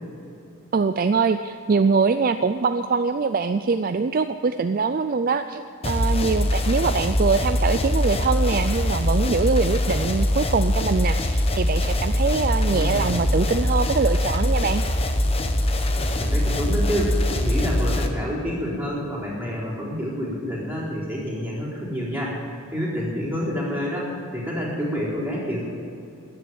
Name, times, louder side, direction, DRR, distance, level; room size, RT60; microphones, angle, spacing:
voice 1, 0.7-14.8, right 4 dB, 40° right, 9 dB, 0.4 m, -23 dB
sound 1, 5.8-18.1, left 1 dB, 25° left, 1.0 m, -23 dB
voice 2, 12.7-13.1 16.2-22.4 22.7-25.7, equal, 10° right, -6 dB, 4.0 m, -28 dB
14.0 x 10.0 x 9.4 m, 2.7 s
head